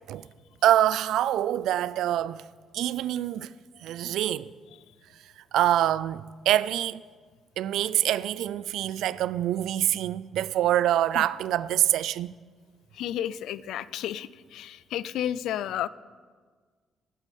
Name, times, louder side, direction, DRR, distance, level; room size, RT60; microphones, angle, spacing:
voice 1, 0.6-2.4 2.7-3.5 3.8-4.5 5.5-7.0 7.6-12.3, right 12 dB, 85° right, 0.3 m, -25 dB
voice 2, 12.9-15.9, left 11 dB, 85° left, 0.3 m, -32 dB
8.4 x 8.3 x 8.5 m
cardioid pair, 90°, 0 cm